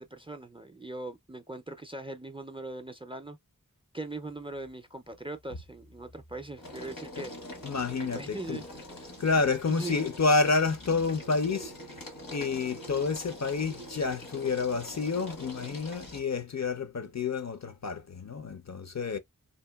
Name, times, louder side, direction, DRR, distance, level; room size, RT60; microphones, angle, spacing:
voice 1, 0.0-3.4 3.9-7.3 7.9-8.6 9.7-9.9, right 2 dB, 15° right, 0.4 m, -40 dB
sound 1, 4.2-4.7 5.1-16.2, left 1 dB, 80° left, 1.0 m, -45 dB
voice 2, 7.6-8.6 9.2-19.2, left 4 dB, 55° left, 0.5 m, -29 dB
2.8 x 2.5 x 2.2 m
wide cardioid pair, 40°, 34 cm